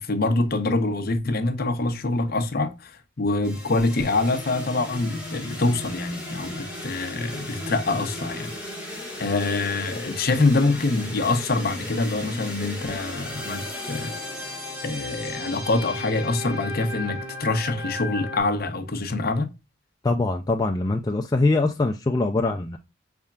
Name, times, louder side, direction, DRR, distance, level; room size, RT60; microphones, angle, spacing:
voice 1, 0.0-8.6 8.8-8.9 9.2-14.1 14.8-19.5, left 2 dB, 50° left, 0.7 m, -25 dB
sound 1, 3.4-18.4, left 1 dB, 5° right, 1.5 m, -35 dB
voice 2, 20.0-22.8, left 2 dB, 20° left, 0.3 m, -23 dB
5.4 x 3.5 x 2.3 m
head